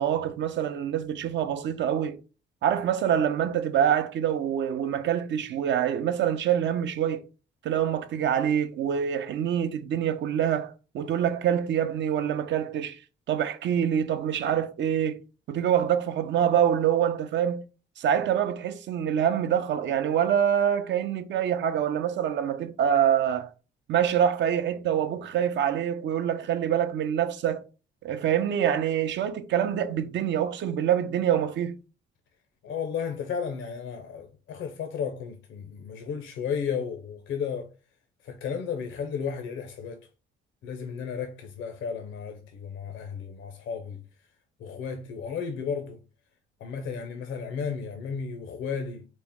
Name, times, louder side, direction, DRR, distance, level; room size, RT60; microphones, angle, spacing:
voice 1, 0.0-2.2 2.6-7.2 7.6-13.0 13.3-15.2 15.5-17.6 18.0-23.5 23.9-27.6 28.0-31.8, right 9 dB, 65° right, 0.6 m, -25 dB
voice 2, 32.6-37.7 38.2-40.1 40.6-44.0 44.6-46.0 46.6-49.1, left 6 dB, 75° left, 0.6 m, -33 dB
4.2 x 2.0 x 3.5 m
cardioid pair, 90°, 20 cm